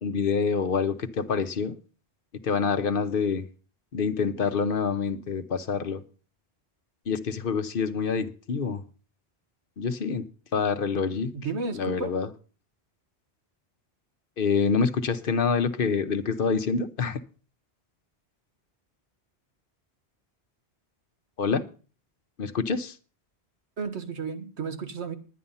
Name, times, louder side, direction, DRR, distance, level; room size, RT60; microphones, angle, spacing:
voice 1, 0.0-1.8 2.4-3.5 3.9-6.0 7.1-8.8 9.8-10.2 10.5-11.3 11.7-12.3 14.4-17.2 21.4-21.6 22.4-23.0, left 5 dB, 60° left, 0.9 m, -26 dB
voice 2, 11.3-12.1 23.8-25.1, right 5 dB, 90° right, 1.6 m, -33 dB
10.5 x 10.0 x 5.5 m
omnidirectional pair, 1.1 m